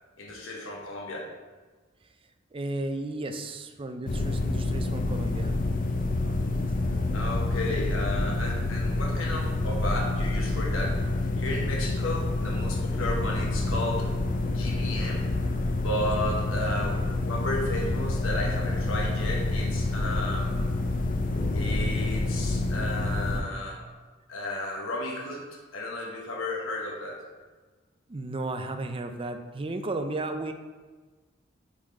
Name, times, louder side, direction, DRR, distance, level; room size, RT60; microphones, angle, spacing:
voice 1, 0.2-1.3 7.1-14.0 14.5-15.3 15.8-20.5 21.5-23.8 24.3-25.4 25.7-27.2, left 1 dB, 85° left, -1 dB, 1.1 m, -33 dB
voice 2, 2.5-5.6 6.2-6.3 7.4-7.8 13.0-13.1 16.1-16.4 28.1-30.5, right 2 dB, 25° right, 7 dB, 0.5 m, -34 dB
sound 1, 4.1-23.4, left 2 dB, 45° left, 0.5 m, -28 dB
6.3 x 4.2 x 4.7 m, 1.4 s
head